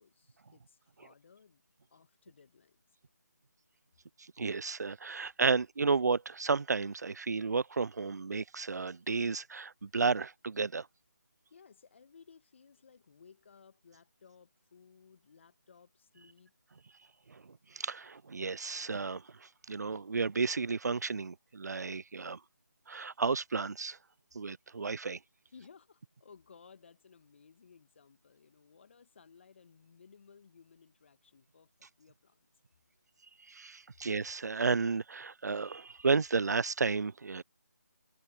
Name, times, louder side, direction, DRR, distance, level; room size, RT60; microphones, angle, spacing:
voice 1, 0.0-1.6 1.9-2.9 11.5-16.5 25.5-32.5, left 6 dB, 40° left, 1.6 m, -59 dB
voice 2, 4.4-10.9 17.3-22.4 22.9-24.0 24.3-25.2 33.5-37.4, right 4 dB, 65° right, 0.4 m, -32 dB
figure-of-eight pair, 155°, 10 cm